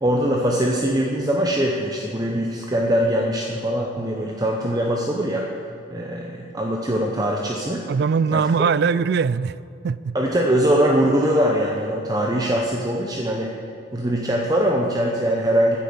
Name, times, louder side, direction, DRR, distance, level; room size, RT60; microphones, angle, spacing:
voice 1, 0.0-5.5 5.9-7.9 8.3-8.4 10.1-13.6 13.9-15.8, equal, 20° right, -1 dB, 0.8 m, -22 dB
voice 2, 7.9-9.6 9.8-10.2, right 5 dB, 55° right, 18 dB, 0.3 m, -21 dB
10.0 x 8.5 x 7.9 m, 2.5 s
head